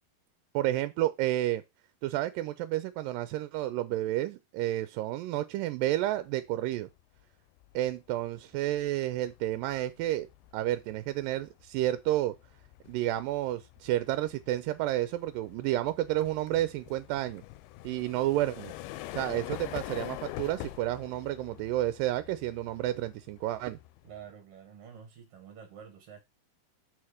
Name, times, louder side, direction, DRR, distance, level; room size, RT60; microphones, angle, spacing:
voice 1, 0.5-1.6 2.0-6.9 7.8-10.3 10.5-12.3 12.9-17.4 17.8-18.7 19.1-23.8, right 14 dB, 80° right, 2.0 m, -30 dB
sound 1, 6.9-7.2 7.6-24.3, left 16 dB, 90° left, 2.5 m, -45 dB
voice 2, 24.0-26.2, right 8 dB, 60° right, 1.5 m, -48 dB
6.3 x 4.3 x 4.9 m
omnidirectional pair, 4.3 m